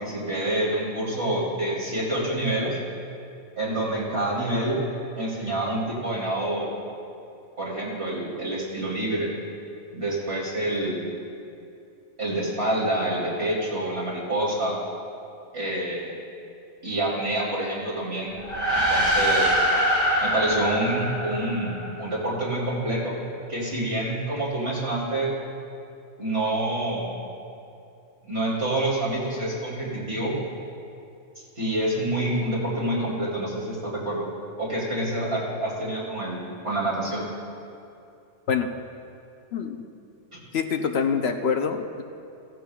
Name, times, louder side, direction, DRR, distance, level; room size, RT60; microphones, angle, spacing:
voice 1, 0.0-2.8 3.6-4.8 5.2-6.7 7.6-9.3 9.9-11.0 12.2-14.8 15.5-16.1 16.8-18.4 18.7-19.6 20.2-23.1 23.5-25.3 26.2-27.2 28.2-30.4 31.6-34.3 34.6-37.3 40.3-40.4, right 1 dB, 55° right, -6 dB, 3.5 m, -27 dB
sound 1, 18.4-22.1, equal, 75° right, 3.0 m, -24 dB
voice 2, 40.5-42.0, left 6 dB, 60° left, 6 dB, 0.9 m, -25 dB
17.0 x 15.0 x 2.3 m, 2.6 s
omnidirectional pair, 1.2 m